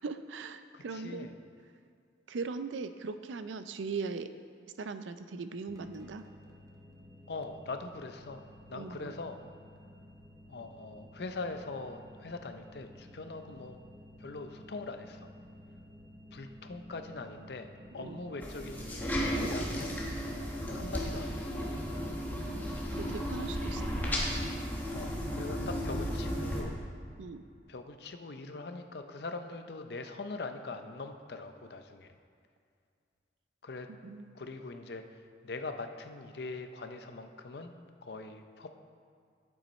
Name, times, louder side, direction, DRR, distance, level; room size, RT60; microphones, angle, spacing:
voice 1, 0.0-1.3 2.3-4.3 4.8-6.2 8.7-9.1 17.9-18.2 22.9-23.8 27.2-27.4 34.0-34.3, right 4 dB, 85° right, 11 dB, 0.4 m, -39 dB
voice 2, 0.7-1.3 7.3-8.4 8.7-9.4 10.5-13.8 14.2-15.3 16.3-17.7 17.9-21.6 23.4-23.5 24.9-26.8 27.7-32.1 33.6-33.9 34.3-37.7 38.0-38.7, left 3 dB, 60° left, 7 dB, 0.6 m, -42 dB
sound 1, 5.7-23.1, equal, 20° right, 0.5 m, -52 dB
sound 2, 18.4-26.6, equal, 10° left, 1.2 m, -34 dB
9.2 x 7.9 x 4.2 m, 2.3 s
head